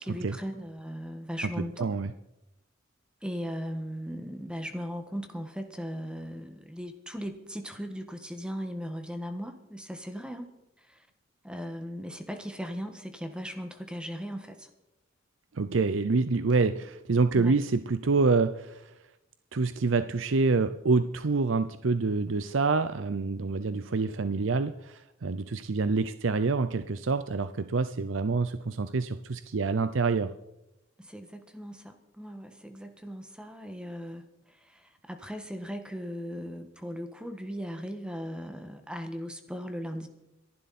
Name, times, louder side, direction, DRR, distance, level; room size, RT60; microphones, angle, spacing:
voice 1, 0.0-1.9 3.2-10.5 10.8-11.1 11.4-14.7 17.3-17.6 31.0-40.1, equal, 5° right, 6 dB, 1.5 m, -38 dB
voice 2, 1.6-2.1 15.5-18.9 19.5-30.3, right 4 dB, 75° right, 11 dB, 0.6 m, -27 dB
28.0 x 11.5 x 4.3 m, 0.91 s
head